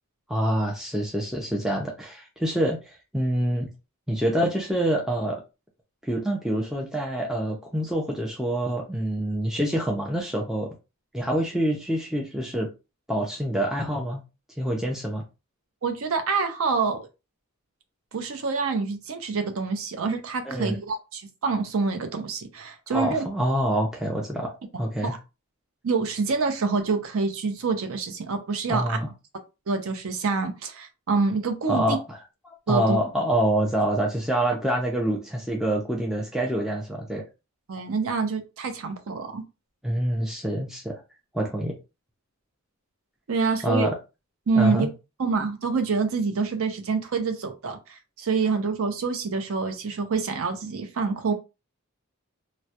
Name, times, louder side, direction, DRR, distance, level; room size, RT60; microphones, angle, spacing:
voice 1, 0.3-3.7 4.1-5.4 6.0-10.7 11.1-12.7 13.1-14.2 14.6-15.2 20.5-20.8 22.9-24.5 24.8-25.1 28.7-29.1 31.7-32.2 32.4-37.2 39.8-41.0 41.3-41.7 43.6-44.0 44.6-44.9, right 1 dB, ahead, -1 dB, 0.3 m, -26 dB
voice 2, 15.8-17.1 18.1-23.2 25.0-25.2 25.8-29.0 29.7-32.0 32.7-33.0 37.7-39.4 43.3-43.9 44.5-44.9 45.2-51.3, right 4 dB, 65° right, 7 dB, 0.5 m, -26 dB
2.2 x 2.0 x 2.7 m, 0.28 s
head